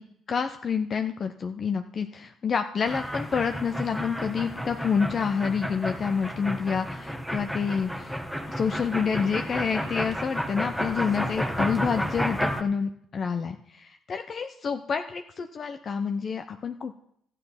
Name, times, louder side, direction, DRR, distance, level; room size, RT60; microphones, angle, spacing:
voice 1, 0.3-8.2 8.5-17.0, left 6 dB, 45° left, 7 dB, 0.7 m, -28 dB
sound 1, 2.8-12.6, equal, 5° left, 1.3 m, -32 dB
13.0 x 9.1 x 5.8 m, 0.71 s
supercardioid pair, 80°, 0 cm